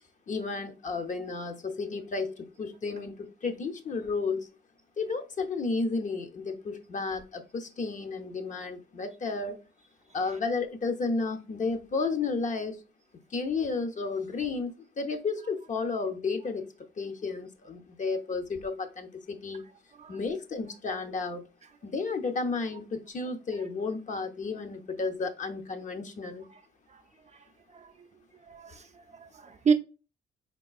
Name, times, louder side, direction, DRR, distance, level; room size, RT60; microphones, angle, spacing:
voice 1, 0.3-4.5 5.0-9.6 10.1-12.8 13.3-16.7 17.0-19.6 20.1-21.4 21.8-26.5, left 4 dB, 40° left, 0.7 m, -32 dB
voice 2, 27.7-28.1 28.4-29.7, right 6 dB, 35° right, 0.4 m, -30 dB
4.4 x 3.6 x 2.4 m
cardioid pair, 90°, 20 cm